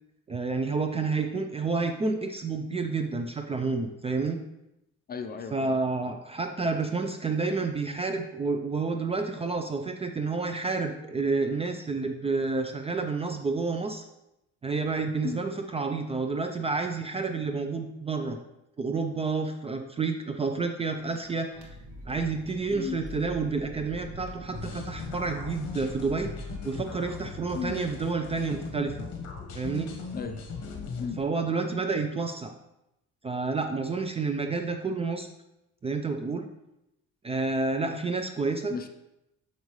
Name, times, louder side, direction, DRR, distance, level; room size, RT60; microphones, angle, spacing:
voice 1, 0.3-4.4 5.5-14.0 14.6-18.4 18.8-21.7 22.1-26.3 26.6-29.1 29.5-29.9 31.2-32.5 33.2-35.3 35.8-36.5 37.2-38.8, right 4 dB, 20° right, 6 dB, 0.4 m, -29 dB
voice 2, 5.1-5.8 15.2-15.4 22.7-23.0 27.5-27.8 30.1-30.4 31.0-31.2 38.7-38.9, left 6 dB, 30° left, 7 dB, 0.5 m, -35 dB
sound 1, 21.0-30.8, equal, 70° right, 1.6 m, -45 dB
sound 2, 24.5-31.2, left 5 dB, 55° left, 1.2 m, -39 dB
6.5 x 5.2 x 3.1 m, 0.88 s
cardioid pair, 120°, 30 cm